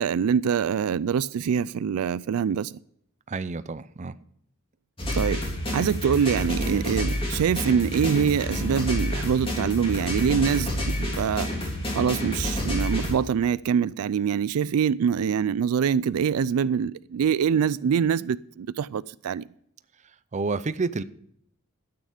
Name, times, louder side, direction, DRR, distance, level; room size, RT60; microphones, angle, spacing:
voice 1, 0.0-2.8 5.1-5.4 5.7-11.5 11.9-19.4, right 7 dB, 85° right, 0.4 m, -24 dB
voice 2, 3.3-4.1 20.3-21.0, right 4 dB, 35° right, 0.5 m, -29 dB
sound 1, 5.0-13.1, left 1 dB, 25° left, 3.4 m, -29 dB
12.5 x 8.8 x 5.0 m
head